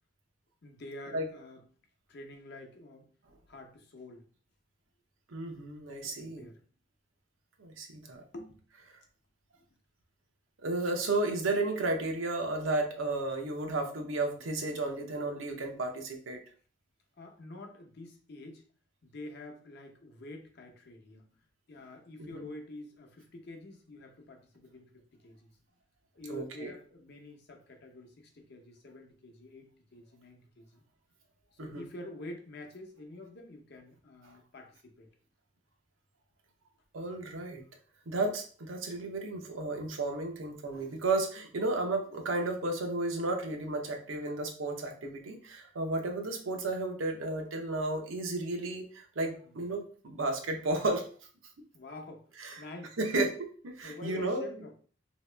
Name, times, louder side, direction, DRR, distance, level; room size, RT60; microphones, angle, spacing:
voice 1, 0.6-1.6 2.1-3.1 3.5-4.2 6.0-6.6 8.3-8.6 9.6-9.7 17.2-18.6 19.0-21.2 21.7-25.5 26.1-30.8 31.5-35.1 49.4-49.6 51.7-52.3 52.6-53.0 53.8-54.8, left 2 dB, 55° left, 2 dB, 0.7 m, -47 dB
voice 2, 5.3-6.5 7.6-8.2 10.6-16.4 22.2-22.4 26.3-26.7 31.6-31.9 34.2-34.3 36.9-37.6 38.1-51.0 52.4-52.6 53.0-54.5, right 2 dB, 90° right, 3 dB, 0.7 m, -33 dB
2.9 x 2.8 x 3.2 m, 0.43 s
head